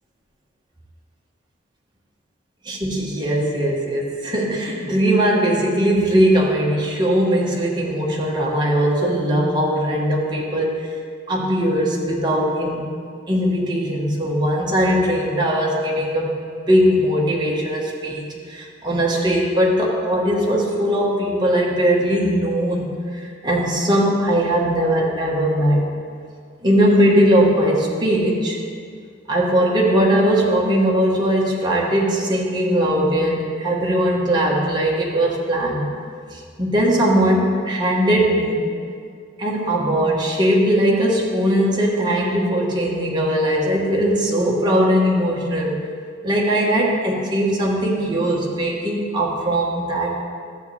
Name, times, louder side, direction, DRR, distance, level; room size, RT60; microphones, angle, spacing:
voice 1, 2.6-10.9 11.3-12.9 13.3-16.3 16.7-25.8 26.6-28.6 29.3-35.9 36.3-38.6 39.4-45.8 46.2-50.2, equal, 25° right, -3 dB, 1.2 m, -19 dB
11.5 x 7.2 x 3.3 m, 2.2 s
head